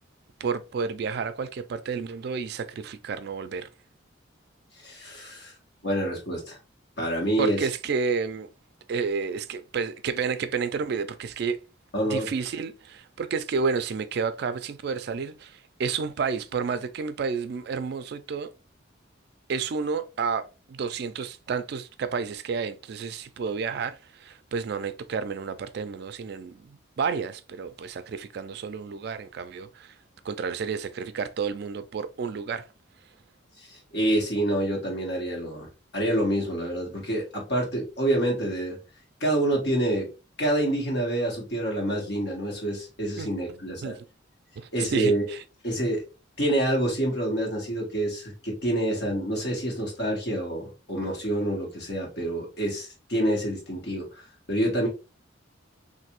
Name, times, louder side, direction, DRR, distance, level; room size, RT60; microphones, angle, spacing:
voice 1, 0.4-3.7 7.4-8.5 8.9-11.6 12.1-18.5 19.5-29.9 30.2-32.7 43.2-43.3 43.8-44.0 44.6-45.4, right 5 dB, 55° right, 0.3 m, -30 dB
voice 2, 4.8-5.5 5.8-6.6 7.0-7.6 11.9-12.3 33.7-38.8 39.2-40.1 40.4-44.0 44.7-45.2 45.6-46.0 46.4-54.1 54.5-54.9, right 1 dB, 60° left, 1.5 m, -27 dB
3.3 x 2.6 x 2.9 m
head